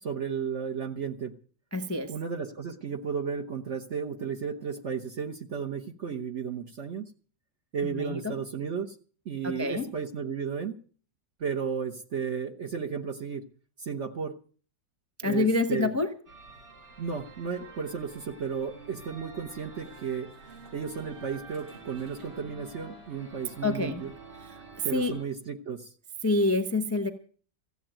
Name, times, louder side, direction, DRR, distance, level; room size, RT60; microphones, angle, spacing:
voice 1, 0.0-1.3 2.1-7.0 7.7-9.0 9.2-10.8 11.4-13.4 13.8-14.4 15.2-15.9 17.0-20.3 20.7-24.1 24.8-25.9, right 6 dB, 45° right, 3 dB, 1.2 m, -33 dB
voice 2, 1.7-2.1 7.9-8.4 9.4-9.9 15.2-16.1 23.6-24.0 24.4-25.1 26.2-27.1, left 2 dB, 10° left, 9 dB, 0.8 m, -27 dB
sound 1, 16.3-25.2, right 3 dB, 70° right, 4.0 m, -49 dB
15.0 x 8.0 x 8.9 m, 0.43 s
omnidirectional pair, 1.9 m